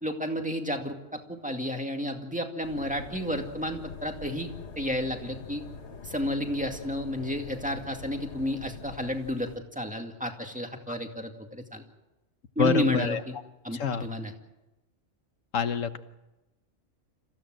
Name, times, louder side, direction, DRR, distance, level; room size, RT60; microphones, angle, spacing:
voice 1, 0.0-4.5 4.8-5.6 6.0-11.8 12.6-13.3 13.6-14.3, equal, 5° right, 4 dB, 2.2 m, -31 dB
sound 1, 2.6-9.6, left 4 dB, 55° left, 1.6 m, -44 dB
voice 2, 12.6-13.2 13.7-14.1 15.5-16.0, left 6 dB, 70° left, 11 dB, 1.4 m, -26 dB
27.0 x 16.0 x 7.7 m, 1.0 s
omnidirectional pair, 1.4 m